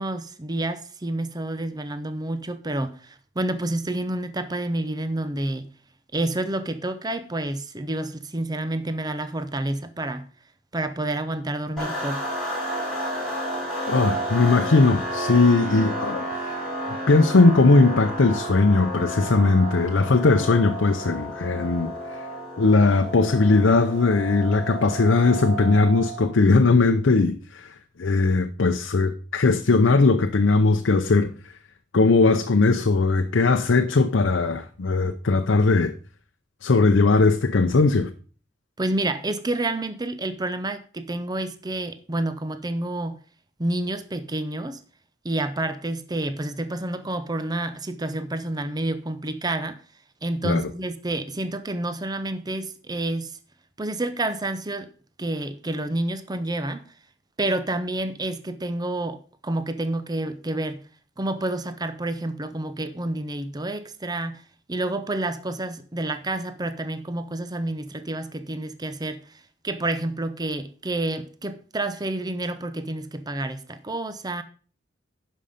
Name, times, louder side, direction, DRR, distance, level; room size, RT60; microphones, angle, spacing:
voice 1, 0.0-5.7 6.1-10.3 10.7-12.3 38.8-43.2 43.6-44.8 45.2-49.8 50.2-53.4 53.8-54.9 55.2-56.9 57.4-60.8 61.2-64.4 64.7-74.4, right 2 dB, 20° right, 0.7 m, -29 dB
sound 1, 11.8-26.3, right 1 dB, 5° left, 5.2 m, -31 dB
voice 2, 13.9-16.6 17.1-21.9 22.6-27.7 28.0-31.3 31.9-35.9 36.6-38.1 50.4-50.6, left 3 dB, 75° left, 0.6 m, -19 dB
11.0 x 5.4 x 5.0 m
head